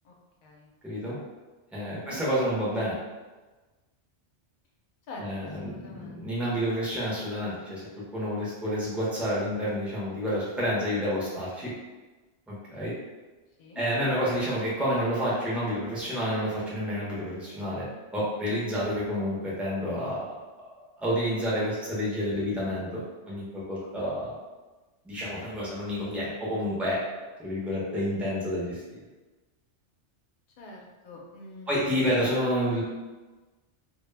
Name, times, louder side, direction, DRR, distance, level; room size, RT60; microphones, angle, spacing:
voice 1, 0.8-1.2 1.7-3.0 5.2-7.9 8.1-11.7 12.5-12.9 13.8-17.8 18.1-20.3 21.0-24.3 25.1-27.0 27.4-29.0 31.7-32.8, equal, ahead, -7 dB, 0.3 m, -29 dB
voice 2, 5.1-6.4 13.6-13.8 23.8-23.9 24.2-24.3 30.6-32.2, left 2 dB, 60° left, -1 dB, 0.6 m, -46 dB
2.1 x 2.0 x 3.2 m, 1.2 s
omnidirectional pair, 1.2 m